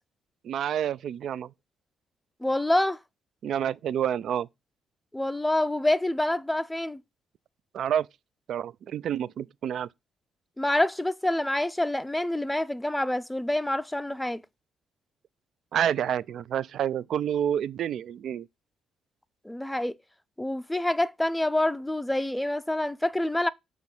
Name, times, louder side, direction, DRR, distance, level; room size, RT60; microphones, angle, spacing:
voice 1, 0.4-1.5 3.4-4.5 7.7-8.1 8.5-9.9 15.7-18.5, right 9 dB, 65° right, 0.3 m, -28 dB
voice 2, 2.4-3.0 5.1-7.0 10.6-14.4 19.5-19.9 20.4-23.5, left 1 dB, 5° left, 0.4 m, -27 dB
6.4 x 3.0 x 5.3 m
cardioid pair, 110°, 0 cm